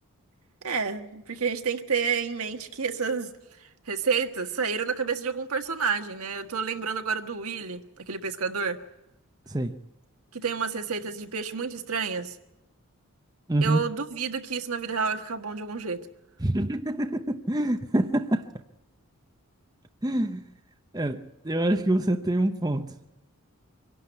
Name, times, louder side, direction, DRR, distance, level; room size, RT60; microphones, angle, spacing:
voice 1, 0.6-3.3 3.9-8.8 10.3-12.4 13.6-16.0, right 5 dB, 80° right, 1.5 m, -29 dB
voice 2, 13.5-13.8 16.4-18.4 20.0-20.4 20.9-22.9, right 1 dB, 15° right, 0.7 m, -26 dB
24.5 x 11.5 x 9.4 m
head